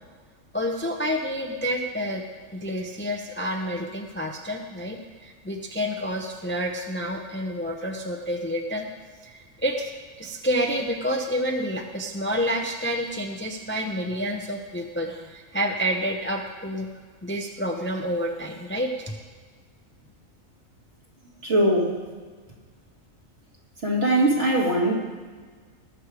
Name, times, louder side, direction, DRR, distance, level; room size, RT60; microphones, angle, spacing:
voice 1, 0.5-2.2 2.5-8.9 9.2-9.9 10.2-16.9 17.2-19.1, equal, 10° left, 3 dB, 0.6 m, -29 dB
voice 2, 21.4-21.9 23.8-25.0, right 1 dB, 55° right, -2 dB, 2.3 m, -21 dB
19.0 x 6.7 x 4.8 m, 1.5 s
omnidirectional pair, 1.4 m